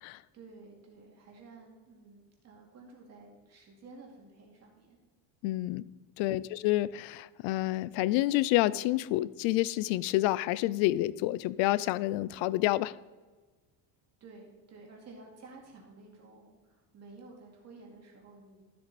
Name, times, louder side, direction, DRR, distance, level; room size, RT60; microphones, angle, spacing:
voice 1, 0.3-5.0 6.2-6.5 14.2-18.7, right 3 dB, 35° right, -1 dB, 2.3 m, -53 dB
voice 2, 5.4-5.8 6.2-13.0, left 16 dB, 70° left, 19 dB, 0.5 m, -28 dB
13.0 x 7.9 x 4.1 m, 1.3 s
cardioid pair, 175°, 47 cm